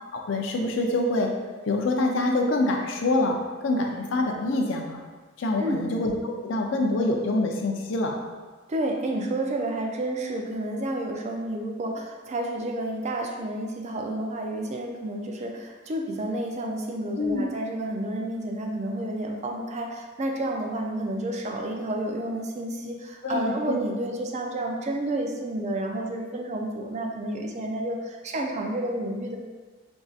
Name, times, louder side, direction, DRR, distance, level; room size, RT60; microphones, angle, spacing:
voice 1, 0.1-1.3 1.7-3.4 3.6-5.0 5.4-8.2 17.2-17.4 23.2-23.8, left 2 dB, 70° left, 1 dB, 0.5 m, -25 dB
voice 2, 8.7-29.4, right 1 dB, 35° right, 2 dB, 0.4 m, -30 dB
4.5 x 2.6 x 2.4 m, 1.4 s
head